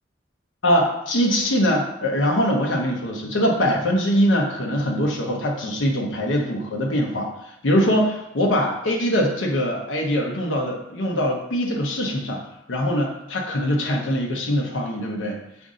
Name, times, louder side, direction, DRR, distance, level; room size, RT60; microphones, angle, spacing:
voice 1, 0.6-12.4 12.7-15.4, equal, 80° left, 0 dB, 0.8 m, -22 dB
5.2 x 2.6 x 3.7 m, 0.81 s
head